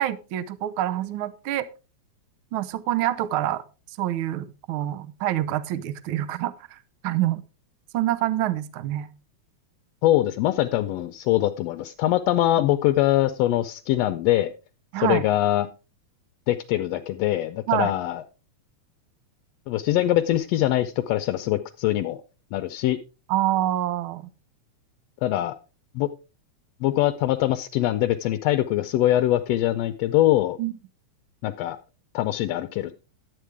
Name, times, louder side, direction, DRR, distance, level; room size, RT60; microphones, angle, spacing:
voice 1, 0.0-1.6 2.5-3.6 4.0-6.8 7.0-7.4 7.9-9.1 14.9-15.2 17.7-17.9 23.3-24.3 30.6-30.8, right 13 dB, 85° right, 14 dB, 1.1 m, -26 dB
voice 2, 10.0-14.5 15.0-15.7 16.5-18.2 19.7-22.2 22.5-23.0 25.2-25.5 25.9-26.1 26.8-30.6 31.4-31.8 32.1-32.9, left 14 dB, 80° left, 9 dB, 1.5 m, -23 dB
11.5 x 9.0 x 3.4 m, 0.32 s
omnidirectional pair, 3.4 m